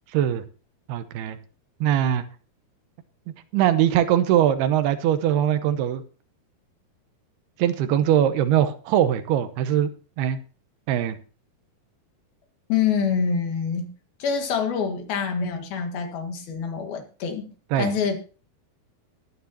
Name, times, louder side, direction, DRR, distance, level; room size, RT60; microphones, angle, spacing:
voice 1, 0.1-0.4 0.9-1.4 1.8-2.2 3.5-6.0 7.6-9.9 10.2-10.4 10.9-11.2 17.7-17.9, right 10 dB, 85° right, 11 dB, 2.8 m, -21 dB
voice 2, 12.7-13.9 14.2-18.2, left 6 dB, 70° left, 5 dB, 3.6 m, -26 dB
21.5 x 9.2 x 2.8 m, 0.37 s
omnidirectional pair, 4.6 m